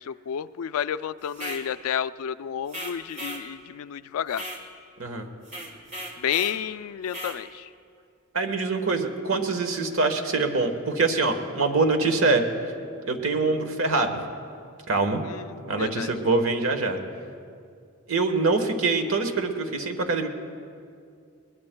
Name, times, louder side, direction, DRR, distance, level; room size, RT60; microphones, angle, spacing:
voice 1, 0.0-4.4 6.2-7.7 15.2-16.1, left 9 dB, 75° left, 15 dB, 0.3 m, -31 dB
sound 1, 1.3-1.7 2.7-3.5 4.3-4.6 5.4-6.6 7.1-7.4, equal, 35° right, 1.4 m, -36 dB
voice 2, 5.0-5.3 8.3-12.4 13.1-14.2 14.9-15.2 15.7-17.0 18.1-20.3, right 3 dB, 65° right, 6 dB, 1.2 m, -24 dB
21.5 x 20.5 x 2.2 m, 2.3 s
head